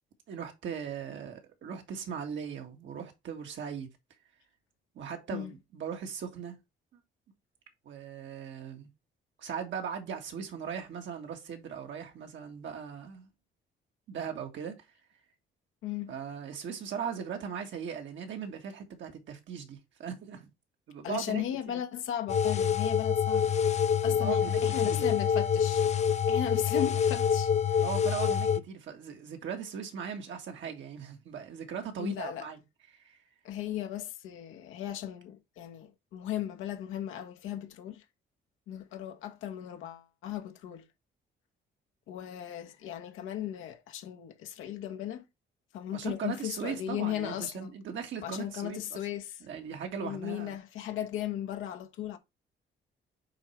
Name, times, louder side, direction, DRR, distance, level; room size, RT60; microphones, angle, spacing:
voice 1, 0.3-3.9 4.9-6.6 6.9-7.0 7.8-8.9 9.4-13.3 14.1-14.7 16.1-20.5 20.9-21.4 24.0-25.1 27.8-32.6 32.9-33.2 45.9-49.0 49.4-50.6, right 7 dB, 70° right, 1.8 m, -39 dB
voice 2, 15.8-16.1 21.0-23.5 24.0-25.9 26.3-27.9 32.0-32.5 33.4-38.0 38.7-40.8 42.1-45.3 45.7-47.7 48.2-49.4 50.0-52.2, left 11 dB, 90° left, 1.2 m, -37 dB
sound 1, 22.3-28.6, left 7 dB, 35° left, 0.5 m, -26 dB
8.6 x 3.1 x 4.4 m
cardioid pair, 90°, 20 cm